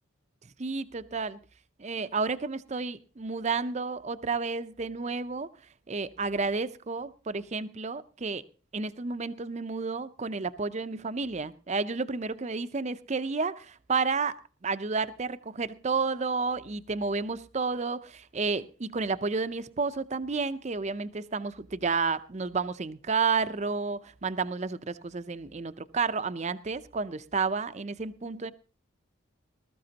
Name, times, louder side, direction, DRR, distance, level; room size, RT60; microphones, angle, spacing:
voice 1, 0.6-1.4 1.8-5.5 5.9-8.4 8.7-14.4 14.6-28.5, right 4 dB, 35° right, 0.6 m, -31 dB
20.0 x 13.5 x 2.9 m
head